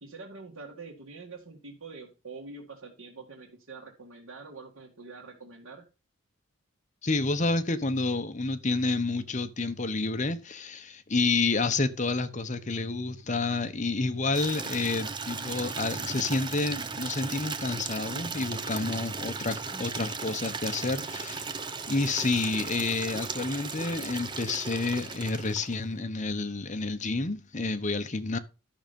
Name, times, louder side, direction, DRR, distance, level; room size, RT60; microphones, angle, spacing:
voice 1, 0.0-5.9, right 4 dB, 85° right, 2.1 m, -45 dB
voice 2, 7.0-21.5 21.9-28.4, left 3 dB, 35° left, 0.9 m, -29 dB
Water tap faucet / Liquid, 14.3-25.9, right 4 dB, 20° right, 0.8 m, -36 dB
12.0 x 6.4 x 5.3 m
head